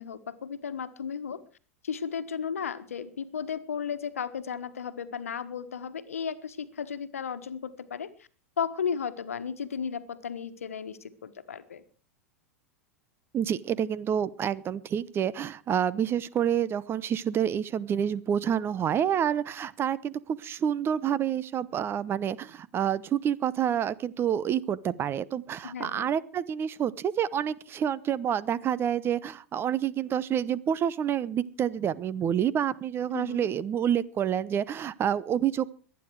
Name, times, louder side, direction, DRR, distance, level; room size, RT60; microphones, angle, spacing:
voice 1, 0.0-1.4 1.8-8.3 8.6-11.8 15.9-16.1 25.6-26.1 33.1-33.5, left 7 dB, 85° left, 11 dB, 1.3 m, -34 dB
voice 2, 13.3-35.7, right 9 dB, 30° right, 18 dB, 0.9 m, -28 dB
23.5 x 9.5 x 4.7 m, 0.38 s
hypercardioid pair, 95°, 8 cm